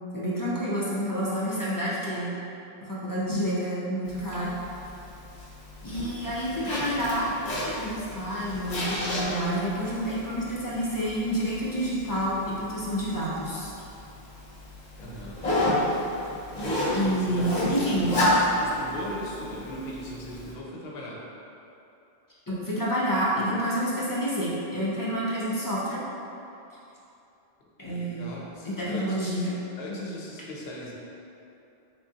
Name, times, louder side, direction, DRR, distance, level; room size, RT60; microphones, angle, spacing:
voice 1, 0.1-2.4 2.8-4.5 5.8-7.3 7.8-13.7 16.9-18.2 22.5-26.0 27.8-28.3 28.6-29.5, equal, 25° left, -8 dB, 0.5 m, -28 dB
Zipper (clothing), 4.1-20.5, left 1 dB, 45° left, 0.9 m, -31 dB
voice 2, 15.0-15.4 17.0-18.1 18.6-21.2 27.8-29.5 29.8-30.9, left 1 dB, 80° left, -3 dB, 0.9 m, -38 dB
3.6 x 3.4 x 2.7 m, 2.8 s
omnidirectional pair, 1.0 m